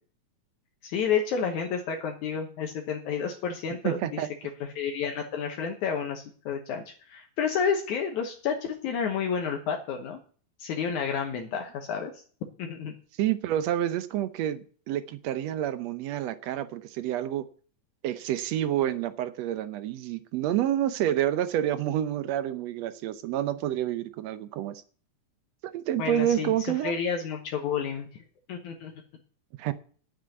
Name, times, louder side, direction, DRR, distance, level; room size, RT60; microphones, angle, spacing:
voice 1, 0.8-4.2 4.8-10.2 10.6-12.1 12.6-13.0 26.0-28.9, left 6 dB, 70° left, 3 dB, 2.5 m, -30 dB
voice 2, 3.8-4.3 13.2-17.5 18.0-24.8 25.6-27.0 29.6-29.7, right 11 dB, 75° right, 13 dB, 1.6 m, -28 dB
9.4 x 7.7 x 9.1 m, 0.43 s
omnidirectional pair, 3.7 m